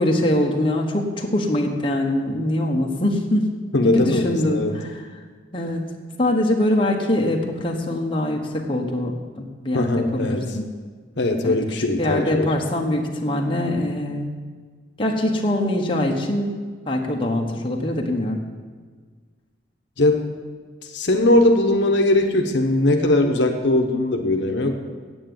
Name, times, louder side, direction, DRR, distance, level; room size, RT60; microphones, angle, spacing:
voice 1, 0.0-3.5 3.9-5.0 5.5-5.8 6.2-10.7 11.4-11.6 12.0-14.3 15.0-16.5 16.9-18.5, left 1 dB, 30° left, 0 dB, 1.2 m, -23 dB
voice 2, 3.7-4.7 9.7-10.5 11.2-12.5 20.0-20.2 20.8-24.7, left 2 dB, 70° left, 4 dB, 1.0 m, -20 dB
9.2 x 8.0 x 7.8 m, 1.5 s
head